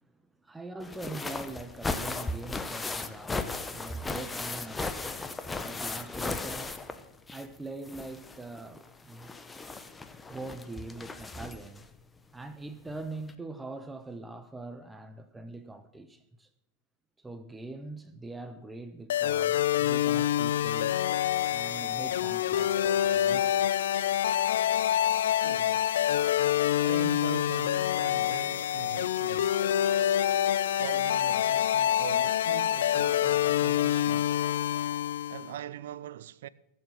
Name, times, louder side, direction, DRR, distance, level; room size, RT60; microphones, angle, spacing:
voice 1, 0.4-6.7 7.3-9.3 10.3-11.9 12.3-16.5 17.2-21.0 21.5-23.6, right 2 dB, 10° right, 0.9 m, -43 dB
sound 1, 0.8-7.6 7.8-11.8 12.9-13.0 13.3-13.4, left 3 dB, 10° left, 1.0 m, -36 dB
sound 2, 19.1-35.5, left 11 dB, 75° left, 0.4 m, -26 dB
voice 2, 25.4-25.9 26.8-29.5 30.7-34.4 35.3-36.5, right 12 dB, 70° right, 0.6 m, -42 dB
15.5 x 7.6 x 7.6 m
hypercardioid pair, 105°, 0 cm